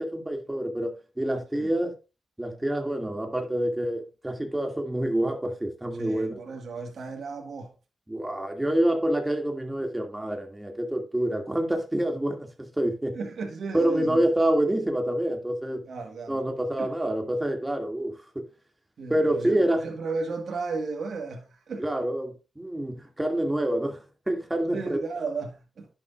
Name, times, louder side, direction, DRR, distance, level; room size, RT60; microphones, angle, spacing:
voice 1, 0.0-1.9 2.4-6.4 8.1-13.2 13.7-15.8 16.3-18.4 19.1-19.8 21.8-25.0, right 1 dB, 15° right, 2.3 m, -27 dB
voice 2, 6.0-7.7 13.1-14.3 15.9-16.4 16.8-16.9 19.0-21.8 24.7-25.9, right 4 dB, 70° right, 1.8 m, -34 dB
10.5 x 6.3 x 2.5 m
cardioid pair, 55°, 0 cm